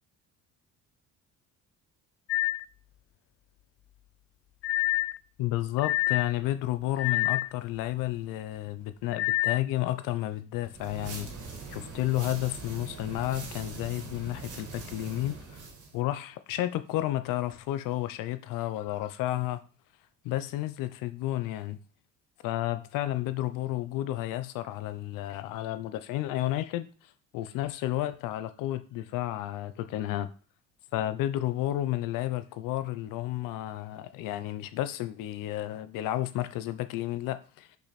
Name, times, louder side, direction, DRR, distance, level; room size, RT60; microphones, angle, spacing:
sound 1, 2.3-2.6 4.6-5.2 5.8-6.3 7.0-7.5 9.1-9.6, left 16 dB, 45° left, 0.4 m, -27 dB
voice 1, 5.4-11.3 11.7-15.6 15.9-19.6 20.2-21.8 22.4-26.9 27.3-30.3 30.9-37.7, left 14 dB, 90° left, 0.8 m, -31 dB
sound 2, 10.7-15.9, right 4 dB, 70° right, 2.7 m, -42 dB
6.2 x 5.8 x 4.2 m
cardioid pair, 100°, 32 cm